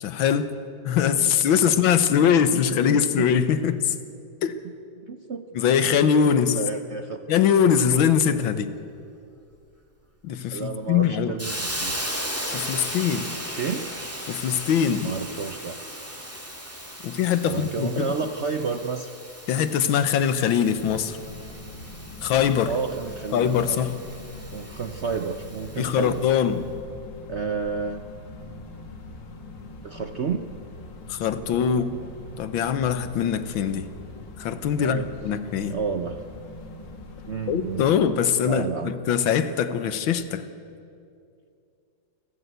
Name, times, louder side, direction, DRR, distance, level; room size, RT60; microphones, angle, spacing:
voice 1, 0.0-0.5 0.9-4.0 4.4-4.6 5.6-6.6 7.3-8.7 10.2-11.3 12.5-13.3 14.3-15.1 17.0-18.1 19.5-21.2 22.2-22.8 23.3-24.0 25.8-26.6 31.1-32.0 32.4-33.9 34.4-35.8 37.5-40.5, left 8 dB, 90° left, 12 dB, 1.8 m, -22 dB
voice 2, 2.7-3.3 4.6-5.4 6.0-6.1 6.4-7.3 10.5-12.0 13.5-13.9 15.0-15.8 17.4-19.1 22.6-23.9 24.5-26.3 27.3-28.1 29.8-30.5 34.8-35.1 35.7-36.2 37.3-37.9 38.4-39.0, right 5 dB, 60° right, 7 dB, 0.7 m, -31 dB
Hiss, 11.4-26.2, equal, 5° right, 2.6 m, -37 dB
sound 1, 20.8-38.1, left 2 dB, 65° left, 2.6 m, -42 dB
28.0 x 12.5 x 8.1 m, 2.5 s
omnidirectional pair, 2.1 m